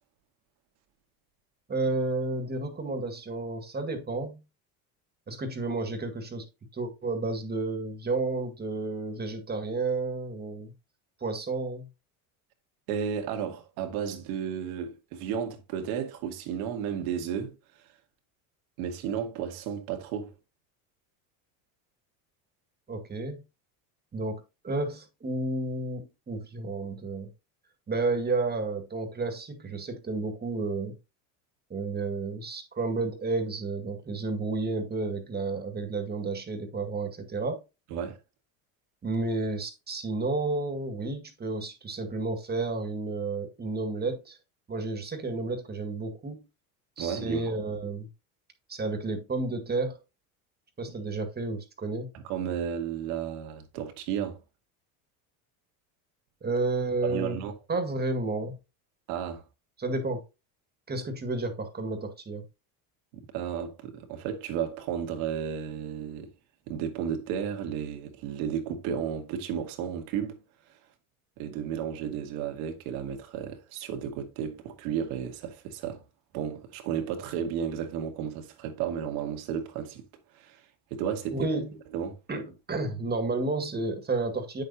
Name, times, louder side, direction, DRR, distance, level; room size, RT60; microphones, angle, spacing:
voice 1, 1.7-4.4 5.3-6.5 6.7-10.7 11.2-11.9 22.9-23.4 24.1-27.3 27.9-31.0 31.7-37.6 39.0-44.4 44.7-46.4 47.0-48.1 48.7-50.0 50.8-52.1 56.4-57.4 57.7-58.6 59.8-60.2 60.9-62.4 81.3-81.7 82.3-84.6, right 3 dB, 20° right, 1.9 m, -31 dB
voice 2, 12.9-17.5 18.8-20.3 37.9-38.2 47.0-47.5 52.1-54.4 57.0-57.5 59.1-59.4 63.1-66.3 66.7-70.4 71.4-76.0 76.3-80.0 80.3-80.7 80.9-81.4 81.9-82.2, right 8 dB, 75° right, 2.0 m, -33 dB
8.5 x 6.7 x 2.8 m
supercardioid pair, 100°, 43 cm